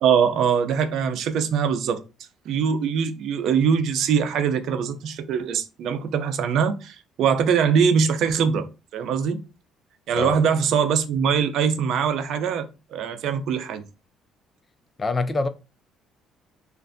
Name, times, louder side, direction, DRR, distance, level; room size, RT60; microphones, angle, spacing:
voice 1, 0.0-2.0 2.5-8.7 8.9-9.4 10.1-12.6 12.9-13.8, right 7 dB, 70° right, 0.5 m, -22 dB
voice 2, 15.0-15.5, left 3 dB, 25° left, 0.4 m, -24 dB
3.2 x 2.5 x 2.6 m
cardioid pair, 90°, 0 cm